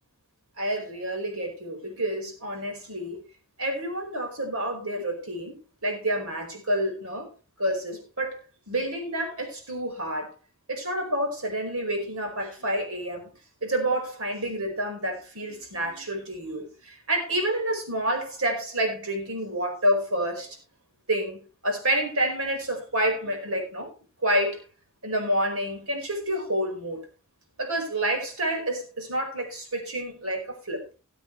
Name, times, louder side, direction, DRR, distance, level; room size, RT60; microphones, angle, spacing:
voice 1, 0.6-3.2 3.6-5.6 5.8-7.3 7.6-8.4 8.7-10.3 10.7-13.3 13.6-20.5 21.1-23.9 24.2-24.6 25.0-27.0 27.6-30.8, right 1 dB, 90° right, 4.8 m, -28 dB
19.5 x 8.0 x 3.2 m
head